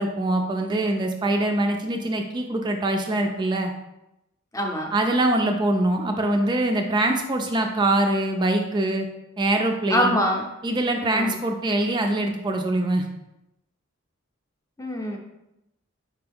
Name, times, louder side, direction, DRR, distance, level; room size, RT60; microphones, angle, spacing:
voice 1, 0.0-3.7 4.9-9.1 9.4-10.2 10.6-13.0, right 1 dB, 25° right, 4 dB, 0.3 m, -23 dB
voice 2, 4.5-4.9 9.9-10.5 11.1-11.4 14.8-15.2, left 1 dB, 15° left, 2 dB, 0.6 m, -24 dB
4.5 x 3.4 x 3.5 m, 0.90 s
head